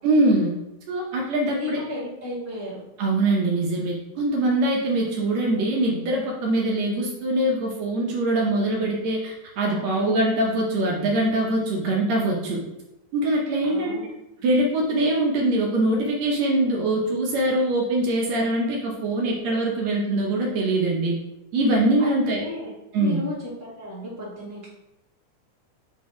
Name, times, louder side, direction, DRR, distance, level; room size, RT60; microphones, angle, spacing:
voice 1, 0.0-0.6 0.9-1.8 3.0-12.6 13.1-14.0 14.4-21.2 21.5-22.4 22.9-23.2, right 1 dB, 70° right, -1 dB, 2.0 m, -23 dB
voice 2, 1.5-2.8 9.6-10.2 13.6-14.0 22.0-24.7, left 2 dB, 10° left, -8 dB, 1.1 m, -34 dB
5.1 x 3.9 x 4.7 m, 0.92 s
omnidirectional pair, 3.5 m